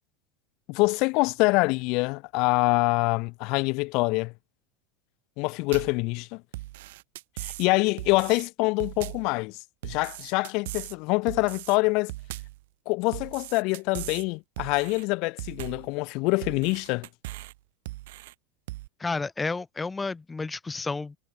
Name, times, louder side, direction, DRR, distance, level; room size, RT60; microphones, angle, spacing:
voice 1, 0.7-4.3 5.4-6.4 7.4-9.6 9.8-12.1 12.9-17.1, left 27 dB, 60° left, 1.3 m, -25 dB
sound 1, 5.7-6.0 6.5-7.7 8.0-8.5 8.8-9.3 9.8-11.0 11.3-11.8 12.1-12.6 13.1-14.3 14.6-15.0 15.4-15.9 16.4-17.5 17.9-18.3 18.7-18.9, right 18 dB, 75° right, 6.8 m, -39 dB
voice 2, 19.0-21.2, left 3 dB, 15° left, 6.1 m, -31 dB
supercardioid pair, 115°, 0 cm